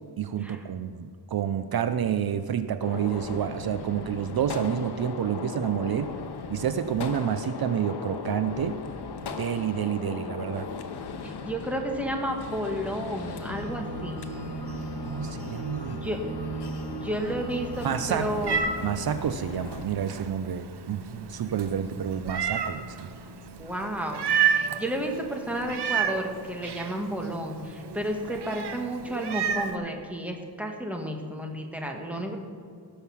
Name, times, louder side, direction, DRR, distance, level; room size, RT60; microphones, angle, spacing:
voice 1, 0.2-6.1 6.5-8.8 9.3-10.7 15.0-16.0 17.8-18.3 18.8-23.1, right 9 dB, 65° right, 11 dB, 0.5 m, -29 dB
Gunshot gunfire, 2.8-19.8, left 5 dB, 80° left, 0.9 m, -38 dB
voice 2, 11.2-14.3 15.9-16.2 17.0-18.6 23.6-32.4, right 1 dB, 5° right, 2 dB, 1.4 m, -32 dB
sound 1, 13.5-18.6, right 4 dB, 35° right, 1.5 m, -37 dB
Meow, 17.7-29.8, right 7 dB, 90° right, 0.9 m, -32 dB
18.0 x 6.6 x 5.6 m, 2.2 s
wide cardioid pair, 155°, 39 cm